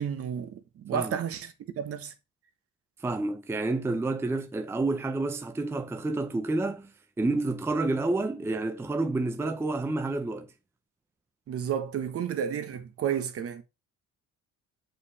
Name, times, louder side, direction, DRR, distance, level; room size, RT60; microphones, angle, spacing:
voice 1, 0.0-1.5 1.8-2.1 11.5-13.6, right 8 dB, 50° right, 1.2 m, -31 dB
voice 2, 3.0-6.9 7.2-10.5, right 2 dB, 10° right, 0.5 m, -29 dB
6.8 x 5.1 x 4.2 m
cardioid pair, 135°, 29 cm